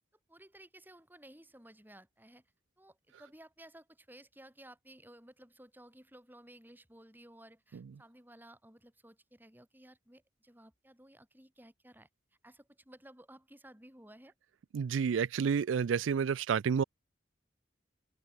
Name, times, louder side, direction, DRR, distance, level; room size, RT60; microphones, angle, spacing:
voice 1, 0.3-2.5 2.8-12.1 12.4-14.3, right 1 dB, 10° right, 6.9 m, -56 dB
voice 2, 14.7-16.8, right 6 dB, 80° right, 0.4 m, -29 dB
open air
head